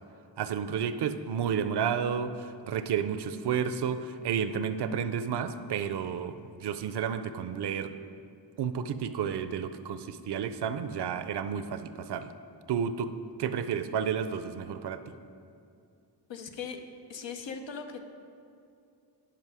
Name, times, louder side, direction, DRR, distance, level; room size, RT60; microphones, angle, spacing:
voice 1, 0.4-7.9 8.6-12.3 12.7-13.1 13.4-15.1, right 7 dB, 65° right, 11 dB, 0.5 m, -31 dB
voice 2, 16.3-16.8 17.1-18.0, left 6 dB, 90° left, 5 dB, 0.8 m, -39 dB
11.0 x 5.4 x 4.8 m, 2.5 s
wide cardioid pair, 65°, 43 cm